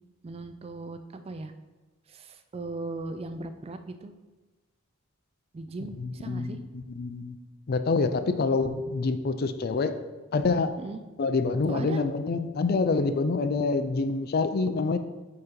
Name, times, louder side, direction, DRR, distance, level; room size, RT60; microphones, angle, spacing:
voice 1, 0.2-1.0 1.2-1.5 2.1-4.1 5.5-6.6 10.8-11.0 11.7-12.0, right 3 dB, 30° right, 9 dB, 0.3 m, -38 dB
voice 2, 6.0-7.4 7.7-10.0 10.3-10.7 11.2-15.0, left 4 dB, 45° left, 10 dB, 0.4 m, -26 dB
8.0 x 2.9 x 5.1 m, 1.2 s
head